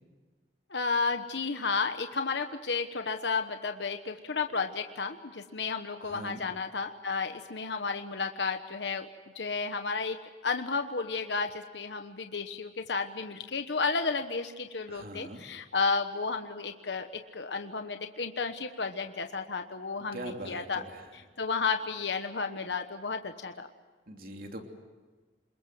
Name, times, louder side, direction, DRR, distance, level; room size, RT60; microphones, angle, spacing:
voice 1, 0.7-9.1 9.3-20.8 21.1-23.7, left 4 dB, 80° left, 6 dB, 1.2 m, -32 dB
voice 2, 6.0-6.4 14.9-15.4 20.1-21.1 24.1-24.6, right 1 dB, 55° right, 3 dB, 3.0 m, -42 dB
28.0 x 21.5 x 8.0 m, 1.4 s
head